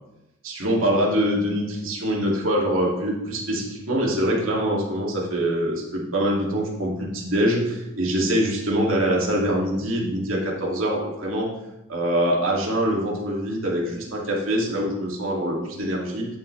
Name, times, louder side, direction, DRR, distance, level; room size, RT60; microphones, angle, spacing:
voice 1, 0.4-11.5 11.9-16.3, equal, 80° right, -2 dB, 2.6 m, -24 dB
10.5 x 7.1 x 3.3 m, 0.94 s
head